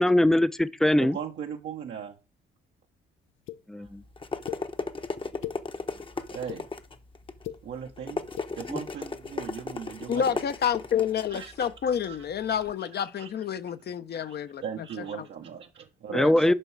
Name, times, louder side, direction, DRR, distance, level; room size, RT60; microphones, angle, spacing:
voice 1, 0.0-1.2 3.7-4.0 8.7-8.8 16.1-16.5, left 1 dB, ahead, 0.5 m, -22 dB
voice 2, 1.0-2.2 3.7-3.9 6.1-6.7 7.6-8.2 8.5-10.4 11.3-11.7 12.0-12.3 12.8-12.9 13.2-13.3 14.2-14.4 14.6-16.5, right 8 dB, 65° right, 1.0 m, -38 dB
sound 1, 3.5-3.6 4.5-4.6 5.2-5.6 6.2-6.6 7.3-7.6 8.2-8.5, left 13 dB, 85° left, 0.7 m, -37 dB
sound 2, 3.8-12.7, left 3 dB, 25° left, 0.9 m, -37 dB
voice 3, 10.1-14.6 16.1-16.5, left 8 dB, 55° left, 0.8 m, -29 dB
8.9 x 5.5 x 4.7 m
cardioid pair, 90°, 20 cm